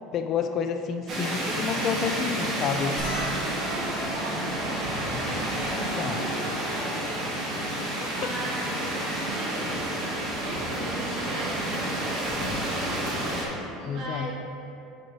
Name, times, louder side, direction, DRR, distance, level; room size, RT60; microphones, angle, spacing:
voice 1, 0.1-3.0 5.6-6.2 7.8-8.1 13.8-14.3, left 6 dB, 35° left, 7 dB, 0.3 m, -30 dB
sound 1, 1.1-13.5, right 1 dB, 30° right, 1.4 m, -30 dB
sound 2, 3.0-7.6 8.3-8.4 8.6-8.8 10.1-10.3 11.7-11.8 12.1-12.3, equal, 10° left, 1.5 m, -42 dB
voice 2, 3.0-14.3, right 1 dB, 50° right, -2 dB, 1.3 m, -39 dB
6.4 x 5.0 x 4.5 m, 2.9 s
cardioid pair, 165°, 0 cm